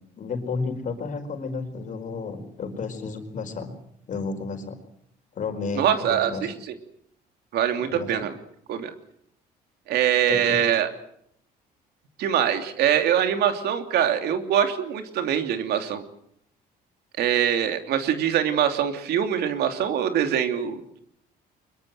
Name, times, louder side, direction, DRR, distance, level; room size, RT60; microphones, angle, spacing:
voice 1, 0.2-3.7 4.1-4.8 5.3-6.5 7.9-8.2 10.3-10.6, left 4 dB, 50° left, 6 dB, 4.8 m, -32 dB
voice 2, 5.7-6.6 7.5-8.3 8.7-8.9 9.9-10.9 12.2-16.0 17.2-21.0, right 9 dB, 75° right, 7 dB, 3.0 m, -23 dB
24.0 x 22.0 x 7.8 m, 0.71 s
cardioid pair, 110°, 17 cm